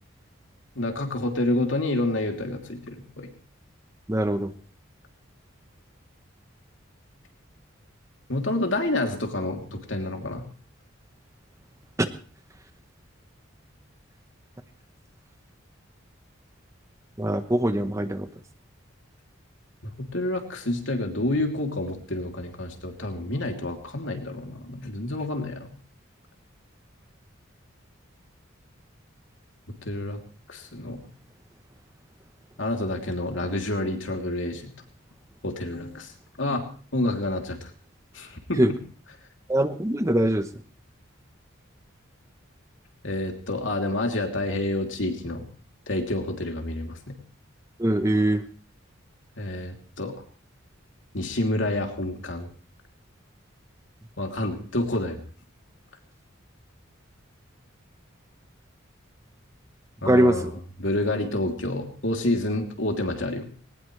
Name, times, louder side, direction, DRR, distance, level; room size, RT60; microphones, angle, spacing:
voice 1, 0.7-3.3 8.3-10.4 20.0-25.7 29.8-30.2 30.5-31.0 32.6-34.7 35.4-36.1 36.4-36.6 36.9-37.7 38.1-38.6 43.0-45.5 45.9-47.1 49.4-50.1 51.1-52.5 54.2-55.2 60.0-60.5 60.8-63.5, left 1 dB, 65° left, 3 dB, 3.1 m, -28 dB
voice 2, 4.1-4.5 12.0-12.1 17.2-18.3 38.6-38.7 39.5-40.5 47.8-48.4 60.0-60.6, right 1 dB, 15° right, 9 dB, 0.9 m, -22 dB
20.5 x 19.5 x 3.3 m, 0.42 s
head